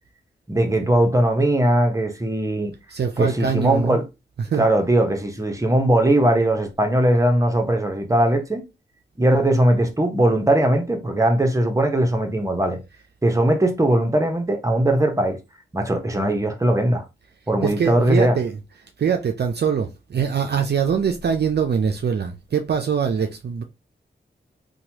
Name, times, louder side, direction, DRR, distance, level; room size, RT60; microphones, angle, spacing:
voice 1, 0.5-2.7 3.2-4.0 4.6-8.6 9.2-12.8 13.2-15.4 15.7-17.0 17.5-18.4, right 1 dB, 15° right, 0.8 m, -19 dB
voice 2, 2.9-4.0 4.4-4.7 17.6-18.6 19.0-23.6, right 7 dB, 55° right, 0.4 m, -23 dB
3.0 x 2.2 x 2.8 m
cardioid pair, 40°, 20 cm